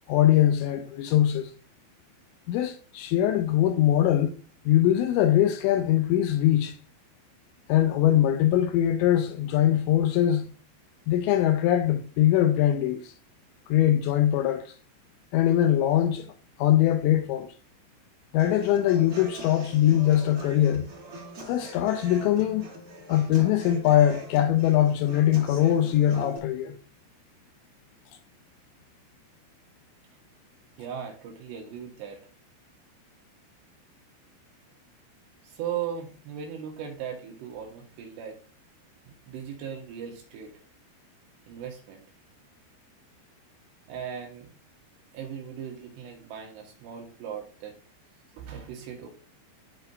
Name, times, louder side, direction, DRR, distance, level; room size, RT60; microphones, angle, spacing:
voice 1, 0.1-1.5 2.5-4.4 4.7-6.8 7.7-10.4 11.1-13.1 13.7-14.7 15.3-16.3 16.6-17.5 18.3-20.9 21.5-22.7 23.1-26.8, left 12 dB, 85° left, 2.6 m, -22 dB
Human voice / Acoustic guitar, 18.4-26.4, right 1 dB, 30° right, 3.0 m, -43 dB
voice 2, 30.8-32.2 35.4-38.4 39.0-40.7 41.5-42.1 43.9-44.6 45.1-47.8 48.4-49.1, right 8 dB, 70° right, 3.0 m, -38 dB
12.5 x 4.2 x 2.6 m
omnidirectional pair, 5.6 m